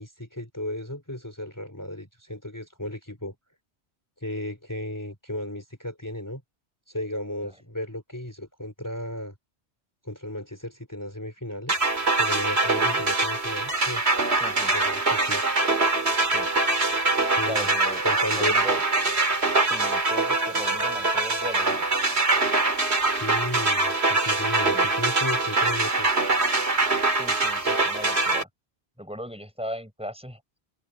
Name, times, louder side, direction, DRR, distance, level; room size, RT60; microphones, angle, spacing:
voice 1, 0.0-3.4 4.2-6.4 6.9-9.3 10.0-14.0 14.7-15.4 17.4-17.7 18.0-18.6 23.1-26.2, left 1 dB, 15° left, 3.7 m, -34 dB
sound 1, 11.7-28.4, right 3 dB, 70° right, 3.0 m, -23 dB
voice 2, 14.4-14.7 16.3-16.5 17.5-18.0 18.4-18.8 19.7-21.8 24.7-24.9 27.1-28.5 29.0-30.4, equal, 5° right, 5.5 m, -38 dB
omnidirectional pair, 1.1 m